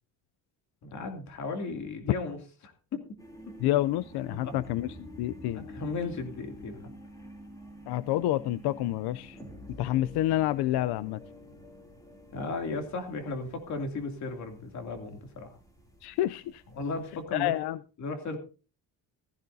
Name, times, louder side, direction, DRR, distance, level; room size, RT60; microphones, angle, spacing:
voice 1, 0.8-3.0 4.3-4.6 5.5-6.9 12.3-15.5 16.7-17.5 18.0-18.4, left 3 dB, 45° left, 4 dB, 2.7 m, -35 dB
sound 1, 3.2-17.2, equal, 10° left, 3.0 m, -49 dB
voice 2, 3.6-4.9 5.2-5.6 7.9-9.4 9.8-11.2 16.0-16.6 17.3-17.8, left 14 dB, 80° left, 16 dB, 0.5 m, -28 dB
16.0 x 14.5 x 2.7 m, 0.34 s
cardioid pair, 180°, 39 cm